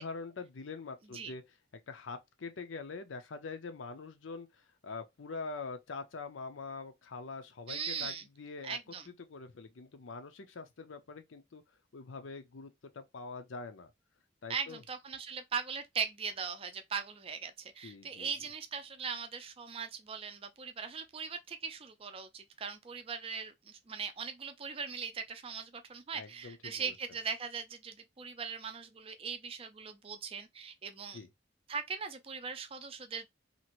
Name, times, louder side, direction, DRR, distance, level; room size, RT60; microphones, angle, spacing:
voice 1, 0.0-1.4 1.9-8.8 9.1-11.6 11.9-13.9 14.4-14.8 17.8-18.3 26.1-26.9 31.1-31.3, left 4 dB, 80° left, 0.6 m, -44 dB
voice 2, 7.7-8.2 8.6-9.1 14.5-31.2 31.7-33.3, right 6 dB, 30° right, 0.4 m, -40 dB
2.8 x 2.5 x 2.9 m
head